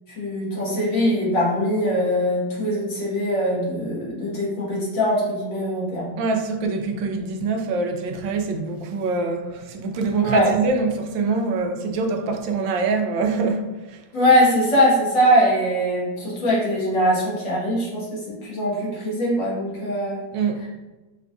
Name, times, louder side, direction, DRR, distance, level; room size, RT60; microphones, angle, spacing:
voice 1, 0.1-6.1 10.2-10.5 14.1-20.2, equal, 70° left, 2.3 m, -22 dB
voice 2, 6.2-14.0 20.3-20.6, right 4 dB, 80° right, 1.3 m, -24 dB
5.8 x 3.4 x 2.5 m
omnidirectional pair, 2.1 m